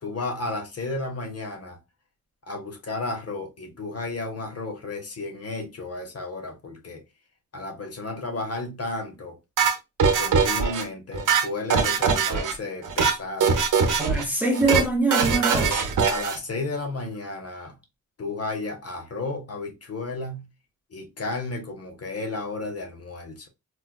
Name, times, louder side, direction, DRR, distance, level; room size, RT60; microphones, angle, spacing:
voice 1, 0.0-1.8 2.4-7.0 7.5-9.4 10.0-13.6 15.6-17.8 18.2-20.5 20.9-23.5, left 2 dB, 50° left, 0.9 m, -33 dB
sound 1, 9.6-10.8 11.1-12.5 12.8-13.2 13.4-14.2 14.5-14.8 15.1-16.4, right 5 dB, 75° right, 0.8 m, -22 dB
voice 2, 14.0-15.9, right 2 dB, 5° right, 0.9 m, -24 dB
4.3 x 2.2 x 2.3 m
wide cardioid pair, 115°, 31 cm